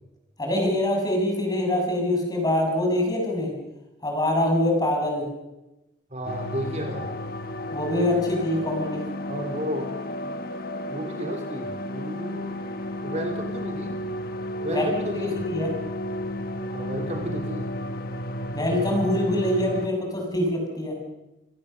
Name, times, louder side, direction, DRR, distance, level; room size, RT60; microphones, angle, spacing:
voice 1, 0.4-3.5 4.0-5.3 7.7-9.0 14.7-14.9 15.1-15.7 18.5-21.0, left 1 dB, 20° left, 1 dB, 6.3 m, -24 dB
voice 2, 6.1-7.1 9.3-9.9 10.2-10.3 10.9-12.6 13.0-13.9 14.6-15.4 16.7-17.7, equal, 40° right, 3 dB, 3.5 m, -32 dB
sound 1, 6.3-19.9, left 1 dB, 55° left, 1.4 m, -33 dB
27.5 x 18.0 x 6.7 m, 1.0 s
head